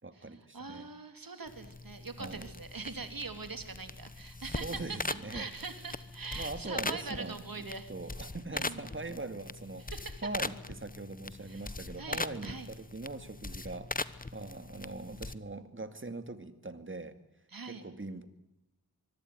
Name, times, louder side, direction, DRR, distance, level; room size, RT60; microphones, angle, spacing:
voice 1, 0.0-0.9 2.2-2.5 4.4-5.5 6.4-9.9 10.2-17.2 17.7-18.3, right 2 dB, 30° right, 10 dB, 2.3 m, -42 dB
voice 2, 0.5-5.0 5.3-7.9 8.5-8.9 9.9-10.3 11.5-11.7 12.0-12.7 17.5-17.8, right 4 dB, 65° right, 8 dB, 3.2 m, -42 dB
sound 1, 1.5-15.4, left 3 dB, 20° left, 1.0 m, -41 dB
24.5 x 23.0 x 9.6 m, 0.86 s
wide cardioid pair, 85°, 37 cm